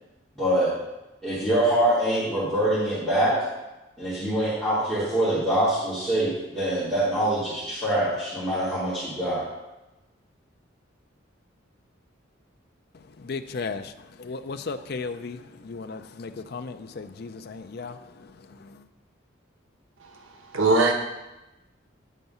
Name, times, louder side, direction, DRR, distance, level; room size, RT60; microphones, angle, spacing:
voice 1, 0.4-0.7 1.2-3.4 4.0-9.4, right 1 dB, ahead, -13 dB, 2.6 m, -24 dB
voice 2, 13.2-18.8, left 4 dB, 55° left, 10 dB, 0.5 m, -36 dB
voice 3, 20.0-20.9, right 3 dB, 90° right, 3 dB, 1.0 m, -22 dB
9.2 x 4.7 x 5.5 m, 1.0 s
head